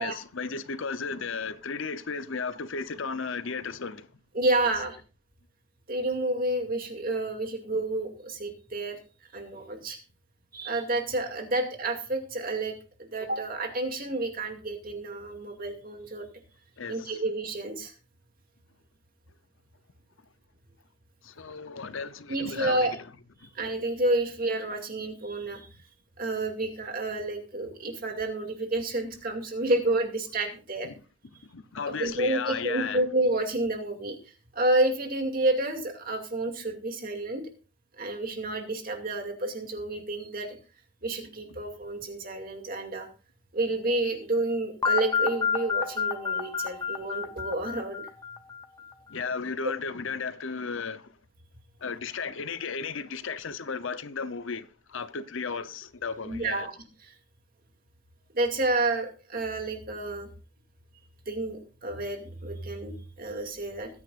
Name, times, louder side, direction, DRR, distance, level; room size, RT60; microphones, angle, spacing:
voice 1, 0.0-4.1 16.8-17.2 21.2-23.0 23.4-23.5 30.8-31.0 31.4-33.0 49.1-51.2 51.8-56.7, left 5 dB, 65° left, 0.7 m, -34 dB
voice 2, 4.3-5.0 5.9-9.0 9.3-10.0 10.5-12.7 13.0-16.3 16.9-17.9 22.3-23.0 23.5-25.7 26.2-30.9 31.9-34.2 34.5-37.4 38.0-40.6 41.0-43.1 43.5-48.0 56.2-56.7 57.0-57.1 58.3-60.3 61.3-63.9, right 2 dB, 45° right, 2.4 m, -30 dB
sound 1, 44.8-48.8, left 6 dB, 15° left, 0.8 m, -29 dB
20.0 x 9.6 x 2.5 m
head